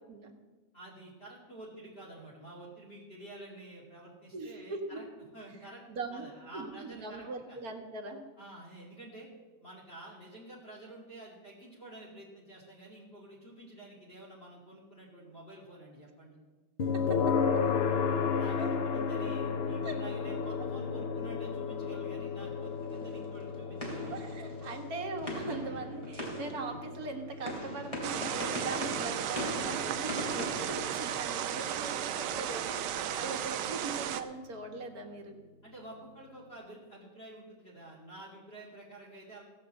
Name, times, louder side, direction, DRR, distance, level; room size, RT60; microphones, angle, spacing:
voice 1, 0.7-5.0 5.3-5.8 6.1-7.6 8.4-9.3 9.6-16.4 17.0-17.1 17.6-17.7 18.3-24.3 33.1-33.2 35.6-39.4, right 1 dB, 35° left, -6 dB, 2.9 m, -49 dB
voice 2, 4.3-5.0 5.9-6.2 6.5-8.2 16.9-17.6 18.6-18.7 19.8-20.0 24.1-35.4, right 3 dB, 55° right, 3 dB, 1.9 m, -40 dB
sound 1, 16.8-31.7, left 5 dB, 55° left, 0.7 m, -34 dB
sound 2, 22.4-31.5, equal, 20° left, 3.1 m, -41 dB
sound 3, 28.0-34.2, right 10 dB, 80° right, 1.3 m, -34 dB
16.0 x 5.9 x 7.7 m, 1.3 s
omnidirectional pair, 1.9 m